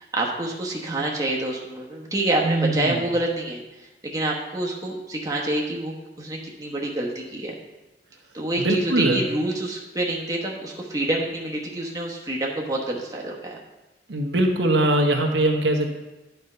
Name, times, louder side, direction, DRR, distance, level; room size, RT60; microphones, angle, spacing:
voice 1, 0.0-3.6 4.0-7.5 8.3-13.6, right 1 dB, 20° right, -2 dB, 1.1 m, -27 dB
voice 2, 2.4-3.0 8.6-9.2 14.1-16.0, right 1 dB, 85° right, 2 dB, 1.1 m, -21 dB
9.5 x 4.6 x 5.5 m, 1.0 s
head